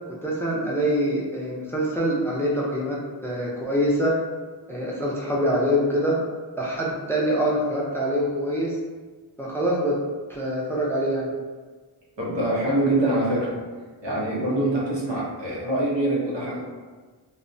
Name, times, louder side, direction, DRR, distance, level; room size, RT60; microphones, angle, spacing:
voice 1, 0.1-4.2 4.7-6.2 6.6-8.8 9.4-10.0 10.3-11.3, equal, 5° left, -4 dB, 0.4 m, -25 dB
voice 2, 12.2-13.6 14.0-16.7, right 1 dB, 85° right, -6 dB, 0.9 m, -24 dB
2.6 x 2.1 x 2.6 m, 1.4 s
wide cardioid pair, 80°, 42 cm